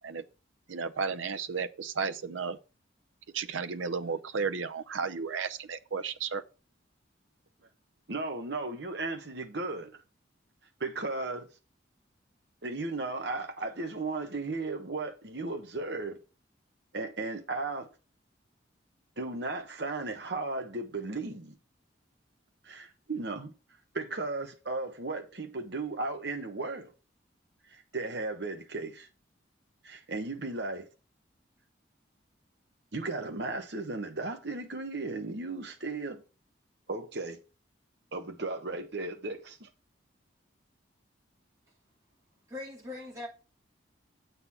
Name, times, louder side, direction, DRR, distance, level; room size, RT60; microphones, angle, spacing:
voice 1, 0.7-2.6 3.3-6.4, right 5 dB, 90° right, 0.7 m, -33 dB
voice 2, 8.1-9.9 10.8-11.5 12.6-16.2 16.9-17.9 19.2-21.6 22.6-23.5 23.9-26.9 27.7-29.1 29.8-30.9 32.9-36.2 36.9-37.4 38.1-39.7, right 3 dB, 60° right, 1.2 m, -35 dB
voice 3, 42.5-43.3, left 2 dB, 15° right, 2.5 m, -40 dB
8.0 x 4.1 x 5.6 m
head